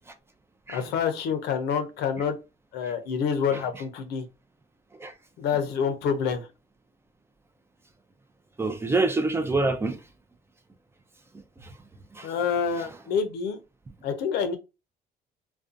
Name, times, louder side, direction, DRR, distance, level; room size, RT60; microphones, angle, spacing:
voice 1, 0.7-2.4 2.7-4.2 5.4-6.5 12.2-13.6 14.0-14.6, left 6 dB, 80° left, 0.6 m, -27 dB
voice 2, 8.6-10.0 11.6-11.7 12.1-12.3 12.8-12.9, right 3 dB, 15° right, 0.4 m, -26 dB
2.4 x 2.2 x 2.5 m
cardioid pair, 110°, 17 cm